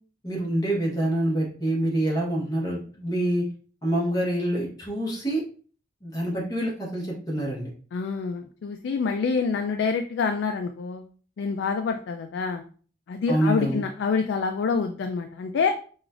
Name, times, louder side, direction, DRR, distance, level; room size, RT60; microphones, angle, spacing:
voice 1, 0.2-3.4 3.8-5.4 6.0-7.7 13.3-13.8, right 1 dB, 20° left, -3 dB, 1.1 m, -26 dB
voice 2, 7.9-11.0 11.4-12.6 13.1-15.7, left 5 dB, 85° left, 5 dB, 0.3 m, -26 dB
4.8 x 2.4 x 2.4 m, 0.43 s
head